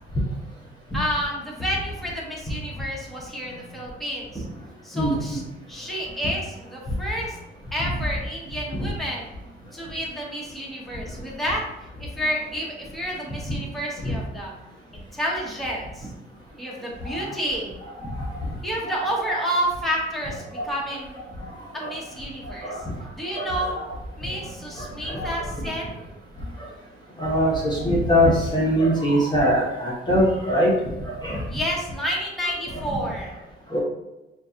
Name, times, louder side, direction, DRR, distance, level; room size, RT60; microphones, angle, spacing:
voice 1, 0.9-4.5 4.8-5.4 5.7-7.4 7.7-9.3 9.7-11.6 12.0-14.5 14.9-16.1 16.6-17.7 18.6-21.2 21.7-22.8 23.1-23.8 24.2-26.0 31.5-33.3, equal, ahead, -4 dB, 1.2 m, -30 dB
voice 2, 4.9-5.4 7.8-7.9 8.8-8.9 13.5-13.6 14.0-14.1 17.0-17.3 18.0-18.5 20.6-20.7 21.1-21.5 21.8-21.9 22.4-22.9 23.3-23.8 24.2-24.5 24.7-25.8 27.2-30.7 31.1-31.5 32.7-33.0 33.7-33.8, equal, 20° left, -4 dB, 1.1 m, -24 dB
6.2 x 2.4 x 2.8 m, 0.99 s
cardioid pair, 90°, 20 cm